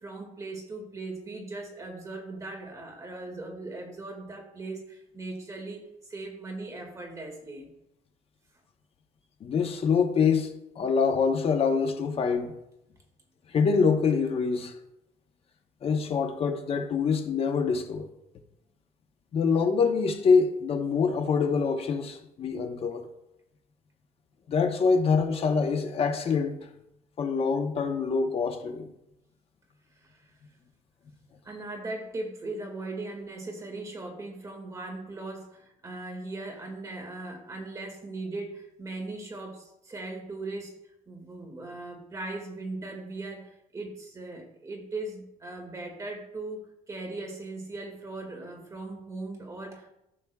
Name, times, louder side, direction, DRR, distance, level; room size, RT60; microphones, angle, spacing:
voice 1, 0.0-5.8 6.1-7.7 30.0-30.3 31.4-40.7 41.1-46.6 46.9-49.9, right 2 dB, 20° right, 2.0 m, -39 dB
voice 2, 9.4-12.5 13.5-14.7 15.8-18.1 19.3-23.1 24.5-26.6 27.2-28.9, left 5 dB, 40° left, 0.9 m, -25 dB
14.0 x 6.0 x 2.3 m
cardioid pair, 140°, 15 cm